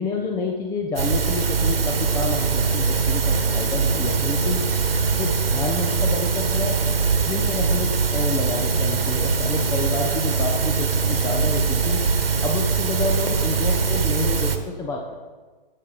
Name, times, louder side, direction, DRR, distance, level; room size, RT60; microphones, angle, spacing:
voice 1, 0.0-4.6 5.1-6.8 7.2-12.1 12.4-15.1, left 3 dB, 10° left, 1 dB, 0.7 m, -29 dB
sound 1, 1.0-14.6, right 5 dB, 80° right, 1.4 m, -22 dB
16.5 x 6.8 x 4.1 m, 1.4 s
figure-of-eight pair, 125°, 29 cm